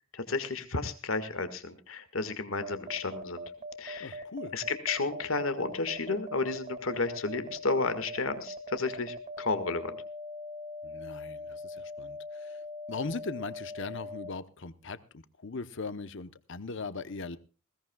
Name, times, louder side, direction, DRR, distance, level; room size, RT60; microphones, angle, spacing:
voice 1, 0.1-3.4 3.8-4.2 4.5-10.0, left 3 dB, 85° left, 10 dB, 1.8 m, -32 dB
sound 1, 2.6-14.3, left 1 dB, 35° right, 2.6 m, -41 dB
voice 2, 4.0-4.5 10.8-12.5 12.9-17.4, left 3 dB, 65° left, 12 dB, 0.9 m, -39 dB
20.5 x 17.0 x 2.3 m, 0.34 s
head